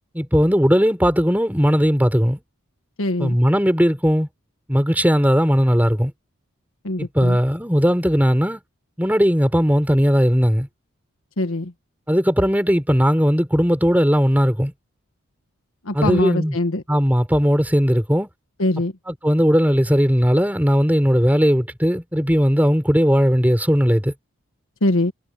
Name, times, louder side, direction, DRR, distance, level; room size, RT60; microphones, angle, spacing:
voice 1, 0.1-2.4 3.2-4.3 4.7-6.1 7.0-8.6 9.0-10.7 12.1-14.7 15.9-16.6 16.9-18.3 19.2-24.1, equal, 10° right, 4.1 m, -18 dB
voice 2, 3.0-3.4 6.8-7.4 11.4-11.7 15.8-16.8 18.6-18.9 24.8-25.1, left 1 dB, 75° left, 1.6 m, -22 dB
head